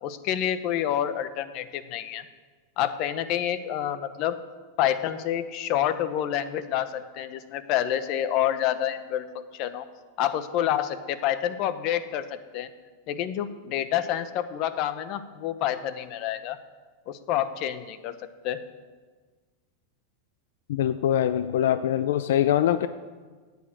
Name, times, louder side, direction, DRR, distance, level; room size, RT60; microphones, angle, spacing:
voice 1, 0.0-2.2 2.8-4.4 4.8-9.9 10.2-12.7 13.1-16.6 17.1-18.1 18.4-18.6, left 11 dB, 45° left, 12 dB, 0.9 m, -28 dB
voice 2, 20.7-22.9, left 11 dB, 75° left, 13 dB, 0.4 m, -23 dB
11.0 x 8.3 x 8.9 m, 1.4 s
supercardioid pair, 145°, 0 cm